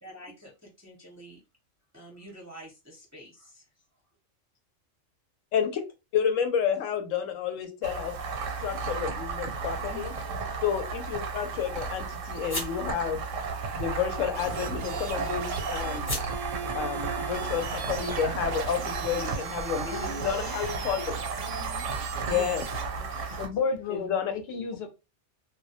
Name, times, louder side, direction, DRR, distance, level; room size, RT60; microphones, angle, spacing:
voice 1, 0.0-1.4 1.9-3.6 9.9-10.1 12.3-12.4 19.9-21.0 21.4-21.9 22.3-23.4, equal, 20° right, -2 dB, 0.5 m, -46 dB
voice 2, 5.5-5.8 6.1-8.1 8.6-10.1 10.6-13.2 13.7-16.1 16.7-21.2 22.3-22.7 23.9-24.3, left 8 dB, 90° left, 7 dB, 1.0 m, -30 dB
sound 1, 7.8-23.5, right 4 dB, 85° right, 1.0 m, -34 dB
sound 2, 9.5-17.3, left 1 dB, 25° left, 0.6 m, -43 dB
sound 3, 14.3-22.8, right 5 dB, 65° right, 0.6 m, -39 dB
voice 3, 23.4-24.9, left 4 dB, 65° left, 7 dB, 0.7 m, -31 dB
2.2 x 2.1 x 2.7 m, 0.26 s
omnidirectional pair, 1.3 m